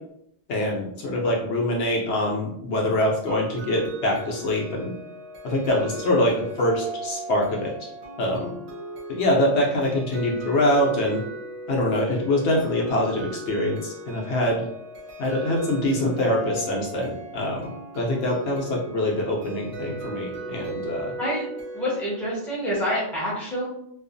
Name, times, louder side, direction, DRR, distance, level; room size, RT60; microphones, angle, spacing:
voice 1, 0.5-4.9 5.4-7.9 8.2-8.6 9.1-11.2 11.7-14.6 15.2-21.1, left 1 dB, 70° left, -1 dB, 0.9 m, -24 dB
sound 1, 3.3-22.5, right 2 dB, 70° right, 0.8 m, -38 dB
voice 2, 21.7-23.7, equal, ahead, -6 dB, 0.7 m, -27 dB
2.4 x 2.3 x 2.5 m, 0.73 s
omnidirectional pair, 1.2 m